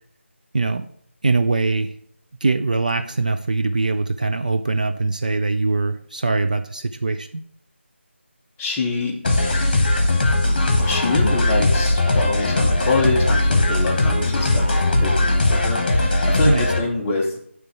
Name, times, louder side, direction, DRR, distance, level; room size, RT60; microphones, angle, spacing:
voice 1, 0.5-0.9 1.2-1.9 2.4-7.4 16.4-16.7, right 3 dB, 40° right, 7 dB, 0.3 m, -22 dB
voice 2, 8.6-9.8 10.2-10.3 10.6-17.3, left 3 dB, 10° left, -1 dB, 0.6 m, -25 dB
sound 1, 9.2-16.8, left 2 dB, 35° left, 1.2 m, -19 dB
7.3 x 3.3 x 6.0 m, 0.63 s
figure-of-eight pair, 160°, 7 cm